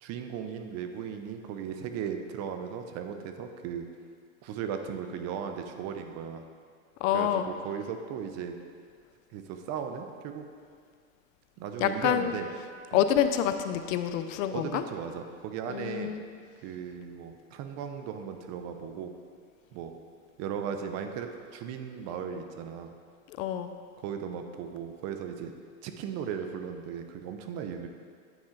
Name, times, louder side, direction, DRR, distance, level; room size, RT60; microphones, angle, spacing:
voice 1, 0.0-3.9 4.4-6.4 7.1-8.6 9.3-10.4 11.6-12.5 12.9-13.0 14.5-16.1 16.6-19.1 19.7-20.0 20.4-22.9 24.0-25.5 25.8-27.9, right 7 dB, 40° right, 6 dB, 0.5 m, -37 dB
voice 2, 7.0-7.5 11.8-12.3 12.9-14.8 15.7-16.2 23.3-23.7, left 10 dB, 70° left, 9 dB, 0.6 m, -27 dB
9.0 x 4.2 x 3.7 m, 2.1 s
supercardioid pair, 125°, 41 cm